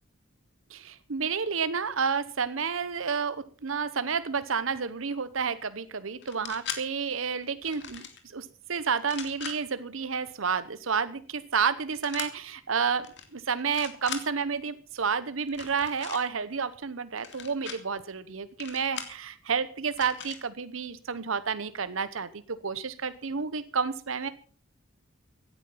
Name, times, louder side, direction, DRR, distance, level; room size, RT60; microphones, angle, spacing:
voice 1, 0.7-8.0 8.3-13.1 13.3-24.3, right 6 dB, 80° right, 13 dB, 0.9 m, -30 dB
sound 1, 6.2-6.8 7.6-8.2 9.0-9.6 12.0-12.3 13.0-13.2 13.6-14.2 15.5-16.2 17.2-17.8 18.6-19.2 19.9-20.4, left 7 dB, 60° left, 2.5 m, -39 dB
16.5 x 10.5 x 5.6 m, 0.40 s
head